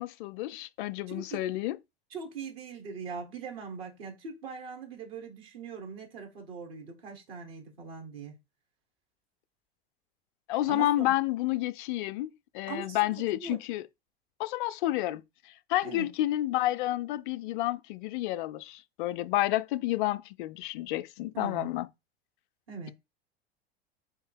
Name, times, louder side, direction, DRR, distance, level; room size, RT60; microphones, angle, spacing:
voice 1, 0.0-1.8 10.5-12.3 12.5-13.8 14.4-15.2 15.7-21.9, left 15 dB, 55° left, 0.4 m, -30 dB
voice 2, 1.1-1.4 2.1-8.4 10.7-11.1 12.7-13.6 15.8-16.1 21.3-21.7 22.7-22.9, right 5 dB, 65° right, 1.7 m, -41 dB
3.5 x 3.3 x 4.6 m
figure-of-eight pair, 80°, 32 cm